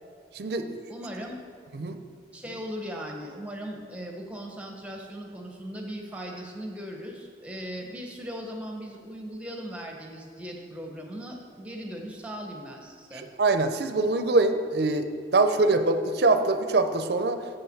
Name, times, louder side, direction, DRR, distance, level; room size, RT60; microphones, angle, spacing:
voice 1, 0.3-0.7 1.8-2.0 13.1-17.4, right 3 dB, 60° right, 8 dB, 0.5 m, -24 dB
voice 2, 0.9-1.3 1.8-2.0 2.3-13.3, equal, 5° right, 1 dB, 0.9 m, -38 dB
6.7 x 5.6 x 6.5 m, 2.1 s
head